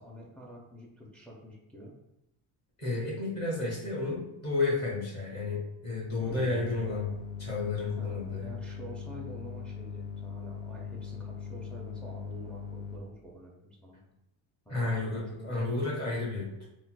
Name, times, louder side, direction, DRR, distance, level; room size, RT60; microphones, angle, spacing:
voice 1, 0.0-1.9 6.2-6.6 6.9-7.2 8.0-14.0 14.7-15.8, equal, 5° left, -2 dB, 0.4 m, -47 dB
voice 2, 2.8-7.0 7.4-8.5 14.7-16.7, left 3 dB, 35° left, -4 dB, 1.3 m, -32 dB
sound 1, 6.2-13.0, left 6 dB, 85° left, 0.6 m, -40 dB
3.9 x 2.2 x 2.3 m, 0.90 s
cardioid pair, 125°, 46 cm